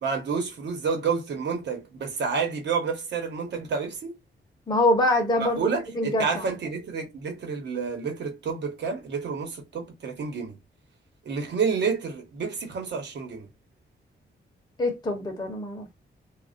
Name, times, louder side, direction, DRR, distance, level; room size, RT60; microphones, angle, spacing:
voice 1, 0.0-4.1 5.4-10.6 11.2-13.5, right 5 dB, 70° right, 1.1 m, -29 dB
voice 2, 4.7-5.6 5.9-6.5 14.8-15.9, left 1 dB, 20° left, 0.7 m, -24 dB
3.3 x 2.4 x 2.5 m
wide cardioid pair, 170°, 19 cm